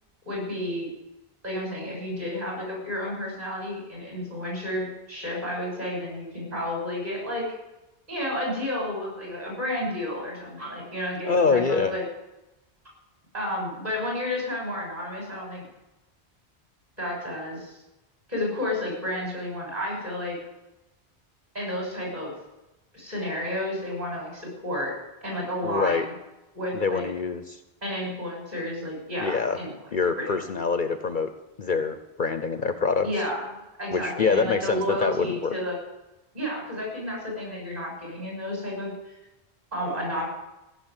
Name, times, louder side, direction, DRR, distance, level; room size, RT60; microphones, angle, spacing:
voice 1, 0.3-0.9 1.4-7.4 8.1-12.0 13.3-15.6 17.0-17.8 18.3-20.4 21.5-22.3 22.9-24.9 25.2-26.1 26.5-27.1 27.8-29.7 30.2-30.5 33.0-33.5 33.8-35.7 36.3-39.2 39.7-40.3, left 1 dB, 40° right, -3 dB, 7.0 m, -31 dB
voice 2, 11.2-11.9 25.6-26.1 26.7-27.6 29.2-29.6 29.9-31.3 31.6-33.1 33.9-35.5, left 5 dB, 50° left, 9 dB, 0.9 m, -25 dB
15.5 x 7.1 x 9.8 m, 0.99 s
omnidirectional pair, 1.1 m